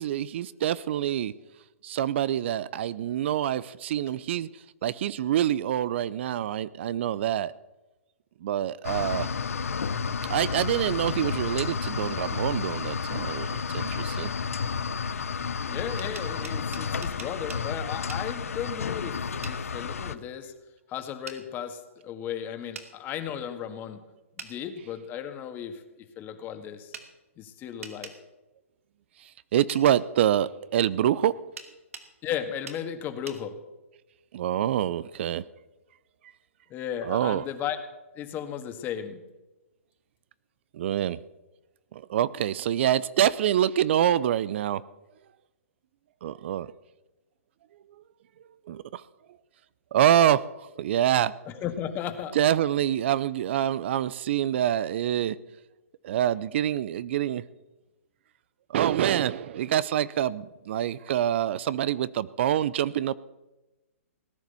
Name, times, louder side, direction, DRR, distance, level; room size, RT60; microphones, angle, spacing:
voice 1, 0.0-1.3 1.8-4.5 4.8-7.5 8.4-9.3 10.3-14.3 29.5-31.4 34.3-35.4 37.0-37.4 40.7-41.2 41.9-44.8 46.2-46.7 48.7-49.0 49.9-51.4 52.3-55.4 56.0-57.4 58.7-63.1, right 11 dB, 55° right, 19 dB, 0.6 m, -26 dB
sound 1, 8.8-20.2, left 5 dB, 80° left, 0.9 m, -31 dB
voice 2, 15.6-19.1 19.4-20.5 20.9-24.0 24.4-25.8 26.2-26.9 27.4-28.1 32.2-33.5 36.7-37.8 38.2-39.2 51.5-52.4, left 9 dB, 25° left, 8 dB, 1.8 m, -35 dB
sound 2, 16.0-17.6 18.1-18.2 19.4-19.6 21.3-21.4 22.7-22.9 24.4-24.5 26.9-27.1 27.8-28.2 29.7-30.0 31.6-32.1 32.7-32.8 33.3-33.4, right 5 dB, 80° right, 2.5 m, -42 dB
18.5 x 10.5 x 6.9 m, 1.0 s
hypercardioid pair, 135°, 8 cm